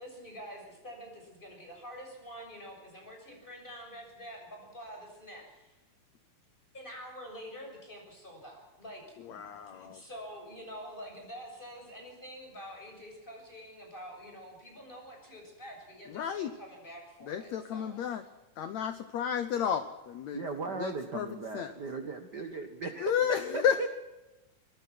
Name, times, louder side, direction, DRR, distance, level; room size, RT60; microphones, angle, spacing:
voice 1, 0.0-5.8 6.7-18.0, equal, 10° left, 1 dB, 7.0 m, -47 dB
voice 2, 9.3-10.0 16.1-16.5 17.3-18.2 18.6-20.4 20.8-21.3 21.5-21.7 23.0-23.9, left 8 dB, 75° left, 10 dB, 1.6 m, -32 dB
voice 3, 20.3-23.9, right 4 dB, 75° right, 7 dB, 0.9 m, -37 dB
23.5 x 20.5 x 6.2 m, 1.0 s
omnidirectional pair, 4.4 m